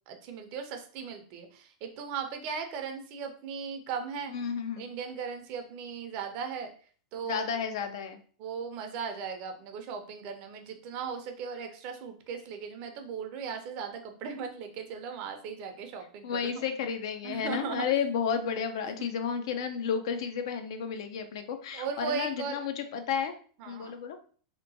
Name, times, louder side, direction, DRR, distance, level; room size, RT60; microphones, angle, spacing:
voice 1, 0.1-4.3 4.8-6.7 7.1-7.6 8.4-16.5 17.2-17.9 19.0-19.1 21.7-22.6 23.6-23.9, right 6 dB, 50° right, 5 dB, 0.5 m, -37 dB
voice 2, 4.3-4.9 7.2-8.2 16.2-23.3 23.7-24.2, left 7 dB, 70° left, 7 dB, 0.4 m, -32 dB
2.9 x 2.1 x 2.7 m, 0.43 s
hypercardioid pair, 125°, 3 cm